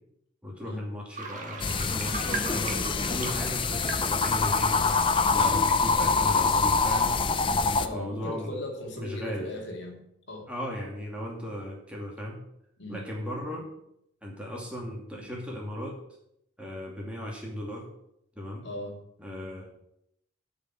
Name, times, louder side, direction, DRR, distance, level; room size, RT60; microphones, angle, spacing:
voice 1, 0.4-4.8 5.3-7.1 7.9-8.6 8.9-9.6 10.5-12.4 12.9-13.7 14.2-16.0 16.6-17.9 18.4-18.6 19.2-19.7, left 1 dB, 5° right, -3 dB, 2.4 m, -36 dB
sound 1, 1.1-7.6, right 3 dB, 40° right, 1.5 m, -40 dB
sound 2, 1.6-7.9, left 4 dB, 25° left, 0.5 m, -25 dB
voice 2, 7.8-10.5 12.8-13.0 18.6-19.0, left 1 dB, 65° left, 1 dB, 2.3 m, -38 dB
10.0 x 5.4 x 7.9 m, 0.77 s
head